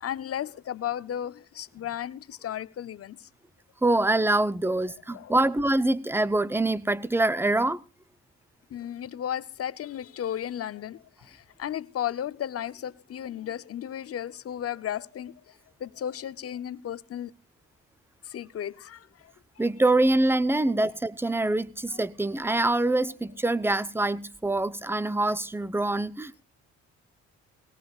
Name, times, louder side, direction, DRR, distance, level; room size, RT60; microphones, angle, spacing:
voice 1, 0.0-3.3 5.1-5.4 8.7-15.5 15.8-17.3 18.2-19.6 20.6-20.8, left 10 dB, 50° left, 0.8 m, -35 dB
voice 2, 3.8-7.8 19.6-26.4, right 2 dB, 10° right, 0.7 m, -25 dB
20.0 x 17.5 x 2.4 m
cardioid pair, 90°, 30 cm